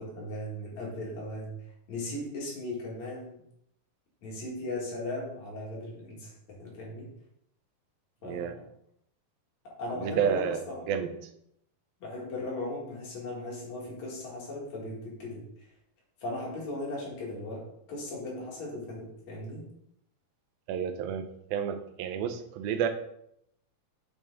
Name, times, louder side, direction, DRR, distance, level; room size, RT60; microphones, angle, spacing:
voice 1, 0.0-1.5 1.9-3.4 4.2-7.1 8.2-8.7 9.6-11.2 12.0-15.4 16.2-17.6 17.9-19.6, left 1 dB, 55° left, -4 dB, 3.0 m, -37 dB
voice 2, 10.0-10.6 10.9-11.1 20.7-22.9, right 8 dB, 90° right, 7 dB, 2.5 m, -30 dB
7.5 x 5.1 x 3.7 m, 0.74 s
omnidirectional pair, 4.1 m